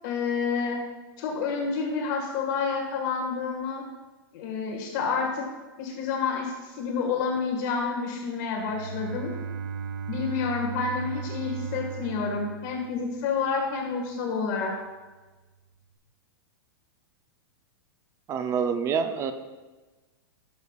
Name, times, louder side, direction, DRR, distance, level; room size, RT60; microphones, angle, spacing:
voice 1, 0.0-0.8 1.2-3.8 4.3-5.4 5.8-9.3 10.1-14.7, left 5 dB, 50° left, 0 dB, 1.6 m, -29 dB
Bowed string instrument, 8.6-13.5, right 6 dB, 50° right, 2.7 m, -36 dB
voice 2, 18.3-19.3, right 6 dB, 25° right, 9 dB, 0.5 m, -26 dB
12.5 x 6.9 x 2.4 m, 1.2 s
supercardioid pair, 150°, 13 cm